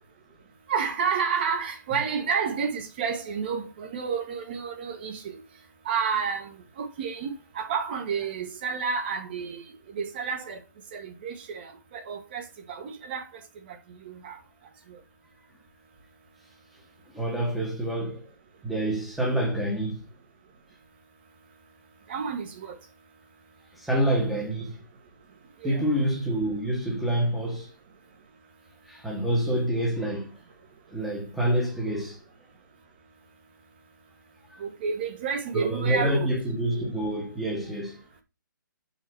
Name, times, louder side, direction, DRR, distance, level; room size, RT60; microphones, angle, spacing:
voice 1, 0.7-5.4 5.8-7.3 7.5-9.6 9.9-10.6 10.9-13.3 13.9-14.4 14.9-15.0 22.1-22.8 25.6-25.8 34.6-36.3, right 6 dB, 30° right, 1.3 m, -30 dB
voice 2, 17.1-18.3 18.6-20.1 23.7-24.8 25.6-27.7 28.9-30.3 30.9-32.2 34.5-34.6 35.5-38.0, right 1 dB, ahead, 1.2 m, -27 dB
5.6 x 4.8 x 6.1 m
hypercardioid pair, 170°, 11 cm